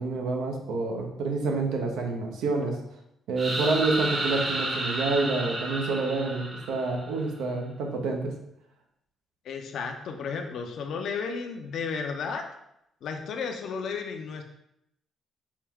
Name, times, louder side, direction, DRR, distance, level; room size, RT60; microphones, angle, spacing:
voice 1, 0.0-2.8 3.3-8.4, right 3 dB, 90° right, 2 dB, 0.6 m, -28 dB
sound 1, 3.4-7.2, right 2 dB, 30° right, 0.8 m, -31 dB
voice 2, 9.4-12.5 13.0-14.4, left 5 dB, 70° left, 4 dB, 0.5 m, -33 dB
4.5 x 2.2 x 3.5 m, 0.79 s
cardioid pair, 90°, 0 cm